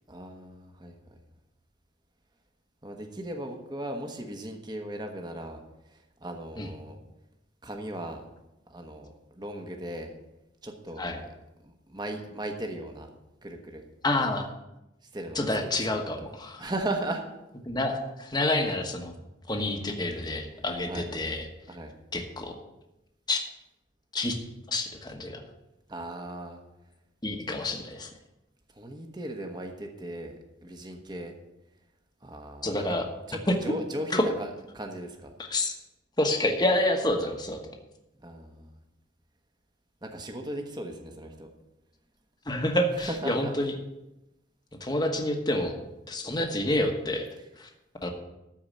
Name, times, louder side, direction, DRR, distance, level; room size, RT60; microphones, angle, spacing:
voice 1, 0.1-1.0 2.8-5.6 5.9-7.0 7.6-8.2 8.7-10.1 10.6-11.3 11.6-13.1 13.4-13.9 15.1-16.0 16.6-17.2 20.3-21.1 21.7-21.9 25.9-26.6 28.7-30.3 30.6-31.3 32.2-33.0 33.3-35.3 38.2-38.7 40.0-41.5 43.0-43.6 47.4-47.5, right 1 dB, 20° right, 3 dB, 1.3 m, -37 dB
voice 2, 14.0-14.5 15.3-16.6 17.6-19.1 19.5-21.5 22.1-22.6 23.3-23.4 24.1-24.4 24.7-25.4 27.2-28.1 32.6-33.0 33.5-33.6 34.1-34.2 35.5-35.7 36.2-37.6 42.5-43.7 44.8-45.8 46.1-47.3 47.6-47.7 48.0-48.1, left 1 dB, 20° left, 4 dB, 1.2 m, -28 dB
13.5 x 4.8 x 8.6 m, 0.93 s
head